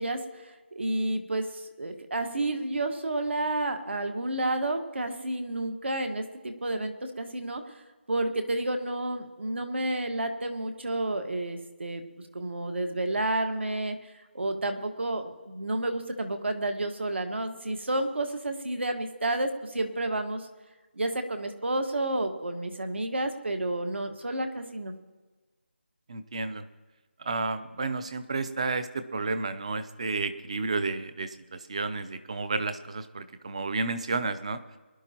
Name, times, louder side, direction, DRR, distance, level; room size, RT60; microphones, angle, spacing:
voice 1, 0.0-7.7 8.1-12.0 12.3-20.5 20.9-24.9, right 1 dB, 65° right, 6 dB, 1.7 m, -30 dB
voice 2, 26.1-26.7 27.2-34.6, right 3 dB, 30° right, 12 dB, 0.7 m, -31 dB
23.0 x 11.0 x 3.0 m, 1.3 s
figure-of-eight pair, 170°, 7 cm